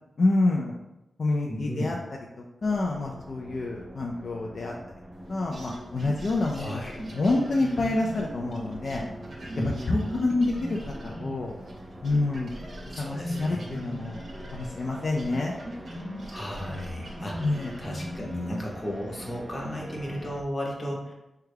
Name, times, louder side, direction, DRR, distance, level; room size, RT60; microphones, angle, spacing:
voice 1, 0.2-0.8 1.2-1.9 2.4-4.7 5.3-6.8 7.1-9.0 9.9-11.5 12.0-12.5 12.9-14.2 14.5-15.6 17.4-17.7, left 2 dB, 60° left, -1 dB, 0.3 m, -27 dB
voice 2, 1.4-1.9 6.5-7.0 9.5-10.1 12.9-13.7 16.3-17.4 17.8-21.1, equal, 30° left, -2 dB, 0.8 m, -34 dB
sound 1, 2.6-20.4, equal, 5° right, 0.4 m, -45 dB
sound 2, 5.5-11.8 12.0-18.3, equal, 55° right, 0.6 m, -40 dB
3.4 x 2.2 x 3.3 m, 0.96 s
cardioid pair, 80°, 0 cm